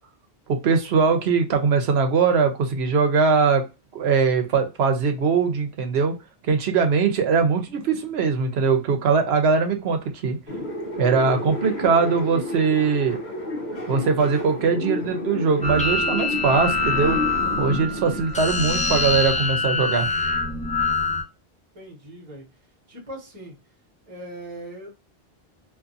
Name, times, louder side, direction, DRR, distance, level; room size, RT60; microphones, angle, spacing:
voice 1, 0.5-3.7 3.9-6.2 6.4-10.4 11.0-13.2 13.9-17.2 17.6-20.1, right 5 dB, 80° right, 6 dB, 1.0 m, -21 dB
sound 1, 10.5-18.2, left 1 dB, 50° left, 0.7 m, -31 dB
sound 2, 15.6-21.2, left 3 dB, 10° left, 0.4 m, -24 dB
voice 2, 21.7-22.4 22.9-23.6 24.1-25.1, right 1 dB, 35° right, 0 dB, 1.2 m, -40 dB
2.6 x 2.5 x 2.5 m, 0.27 s
omnidirectional pair, 1.1 m